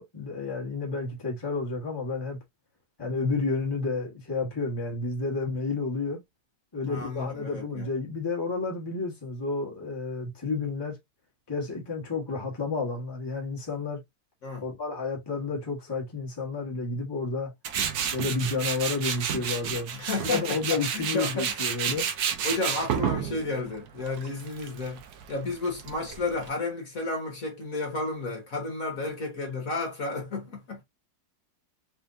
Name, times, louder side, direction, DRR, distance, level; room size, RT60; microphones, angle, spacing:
voice 1, 0.0-2.4 3.0-6.2 6.7-11.0 11.5-14.0 14.6-17.5 18.1-19.9 20.2-22.1, left 4 dB, 15° left, 1.5 m, -31 dB
voice 2, 6.8-7.9 14.4-14.7 19.9-21.6 22.4-25.0 25.3-30.8, left 2 dB, 50° left, 1.7 m, -32 dB
Tools, 17.6-26.5, right 8 dB, 65° right, 1.2 m, -31 dB
4.3 x 3.4 x 2.5 m
omnidirectional pair, 1.9 m